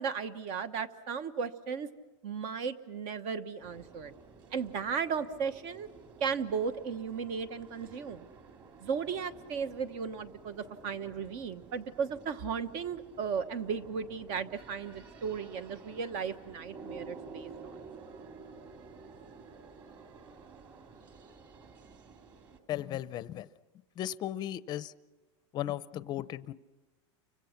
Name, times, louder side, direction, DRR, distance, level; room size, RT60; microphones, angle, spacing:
voice 1, 0.0-1.9 2.2-4.1 4.5-5.9 6.2-8.3 8.8-17.7, right 6 dB, 50° right, 11 dB, 1.3 m, -35 dB
sound 1, 3.6-22.6, right 4 dB, 30° right, 3.1 m, -51 dB
voice 2, 22.7-23.5 24.0-24.9 25.5-26.5, left 12 dB, 30° left, 16 dB, 0.7 m, -36 dB
29.5 x 25.0 x 5.9 m, 1.2 s
supercardioid pair, 150°, 15 cm